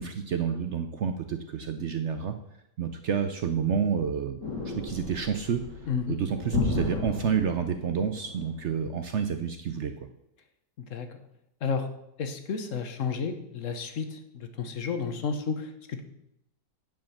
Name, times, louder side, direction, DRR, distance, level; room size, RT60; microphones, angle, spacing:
voice 1, 0.0-2.4 2.8-5.6 6.1-9.9, right 7 dB, 65° right, 8 dB, 0.7 m, -29 dB
sound 1, 4.4-8.5, left 3 dB, 75° left, 2.9 m, -33 dB
voice 2, 5.9-6.2 10.9-11.2 11.6-11.9 12.2-16.0, left 5 dB, 50° left, 8 dB, 1.2 m, -32 dB
9.3 x 5.1 x 7.1 m, 0.80 s
omnidirectional pair, 1.9 m